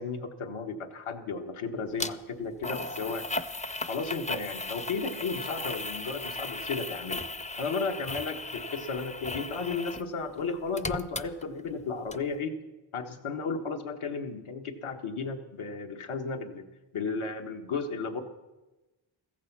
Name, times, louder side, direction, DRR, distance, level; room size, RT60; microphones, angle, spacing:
voice 1, 0.0-3.3 3.8-7.2 7.6-12.6 12.9-16.6 16.9-18.2, left 4 dB, 80° left, 5 dB, 1.6 m, -34 dB
sound 1, 2.0-2.1 2.6-10.1 10.4-11.8 12.1-12.2, left 2 dB, 15° left, 0.4 m, -36 dB
15.5 x 15.0 x 6.1 m, 1.1 s
wide cardioid pair, 140°, 49 cm